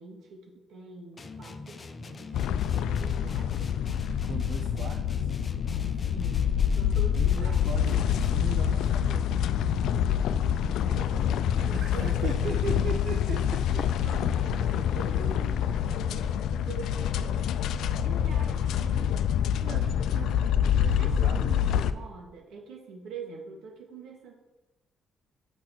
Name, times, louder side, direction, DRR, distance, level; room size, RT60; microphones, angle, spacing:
voice 1, 0.0-3.8 5.8-7.6 10.5-12.3 12.7-12.9 14.0-17.4 18.0-19.2 20.8-24.3, right 4 dB, 80° right, 0 dB, 2.1 m, -44 dB
sound 1, 1.2-8.7, left 3 dB, 35° left, 0.8 m, -43 dB
sound 2, 2.3-21.9, left 9 dB, 80° left, 0.4 m, -26 dB
voice 2, 4.2-5.3 7.1-9.5 11.7-13.9 19.5-21.8, right 5 dB, 65° right, 5 dB, 0.7 m, -38 dB
6.7 x 6.1 x 6.0 m, 1.0 s
cardioid pair, 90°, 0 cm